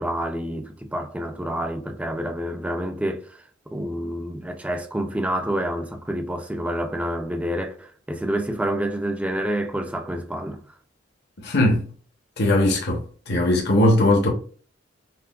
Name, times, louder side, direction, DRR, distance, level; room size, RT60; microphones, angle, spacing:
voice 1, 0.0-10.8, right 1 dB, 5° right, 0.4 m, -28 dB
voice 2, 11.4-11.9 12.4-14.3, left 1 dB, 60° left, 0.8 m, -19 dB
5.7 x 2.2 x 2.3 m
head